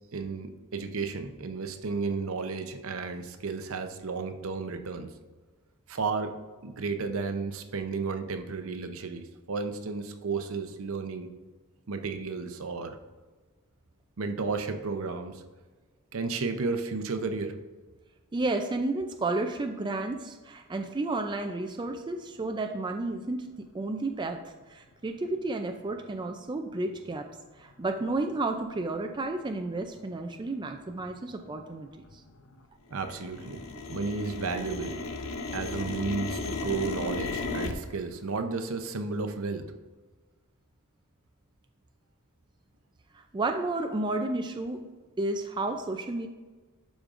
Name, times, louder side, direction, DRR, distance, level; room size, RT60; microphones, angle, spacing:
voice 1, 0.1-5.1 5.9-11.3 11.9-13.0 14.2-15.4 16.1-17.6 32.9-35.0 35.5-39.7, right 4 dB, 70° right, 7 dB, 0.7 m, -33 dB
voice 2, 18.3-27.3 27.6-32.2 43.1-44.9 45.2-46.3, right 2 dB, 20° right, 4 dB, 0.4 m, -32 dB
sound 1, 26.9-27.0 27.6-27.7 28.3-28.6 29.1-29.2 29.4-30.0 30.3-32.6 32.9-37.7, left 3 dB, 65° left, 0.7 m, -36 dB
12.0 x 5.1 x 2.5 m, 1.3 s
head